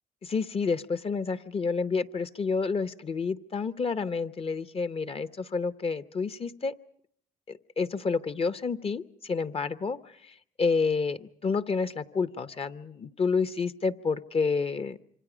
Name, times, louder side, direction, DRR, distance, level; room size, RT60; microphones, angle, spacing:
voice 1, 0.2-6.7 7.5-15.0, left 4 dB, 40° left, 13 dB, 0.9 m, -29 dB
27.0 x 25.0 x 5.1 m, 0.66 s
cardioid pair, 75°, 16 cm